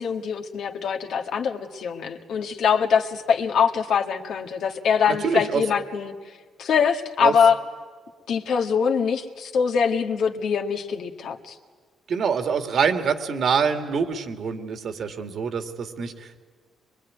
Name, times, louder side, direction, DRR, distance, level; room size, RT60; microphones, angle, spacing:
voice 1, 0.0-6.1 6.6-7.6 8.3-11.6, left 6 dB, 70° left, 3 dB, 1.8 m, -23 dB
voice 2, 5.2-5.6 7.2-7.3 12.1-16.4, right 6 dB, 60° right, 7 dB, 2.1 m, -25 dB
23.5 x 23.0 x 9.5 m, 1.5 s
cardioid pair, 90°, 0 cm